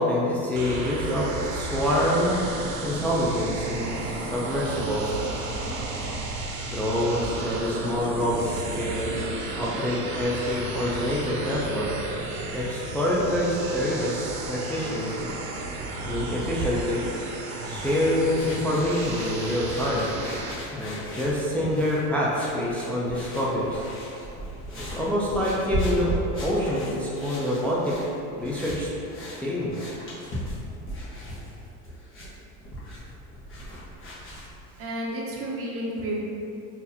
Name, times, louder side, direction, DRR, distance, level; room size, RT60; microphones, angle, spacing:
voice 1, 0.0-2.5 2.8-5.2 6.7-9.1 9.6-11.9 12.5-15.3 16.0-17.0 17.7-20.1 20.7-23.9 24.8-28.0 28.3-28.9 29.4-29.7, left 1 dB, 5° left, -6 dB, 0.4 m, -26 dB
sound 1, 0.5-20.5, right 2 dB, 65° right, 0.7 m, -33 dB
sound 2, 17.6-34.6, equal, 30° left, 1.2 m, -37 dB
voice 2, 34.8-36.2, right 1 dB, 35° right, -4 dB, 0.8 m, -31 dB
3.7 x 2.8 x 2.8 m, 2.6 s
supercardioid pair, 90°, 42 cm